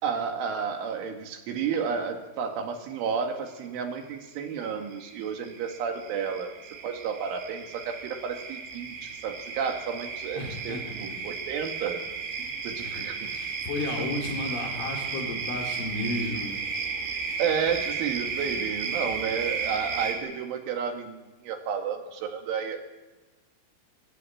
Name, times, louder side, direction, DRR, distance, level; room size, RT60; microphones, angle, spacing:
voice 1, 0.0-6.5 6.8-12.0 12.6-13.6 14.0-14.1 17.4-22.8, right 6 dB, 85° right, 4 dB, 4.7 m, -31 dB
sound 1, 4.0-4.1 4.5-20.2, right 5 dB, 60° right, 5.5 m, -34 dB
voice 2, 10.4-11.0 12.4-16.6, left 2 dB, 80° left, 1 dB, 6.6 m, -34 dB
23.0 x 16.5 x 9.5 m, 1.2 s
omnidirectional pair, 5.4 m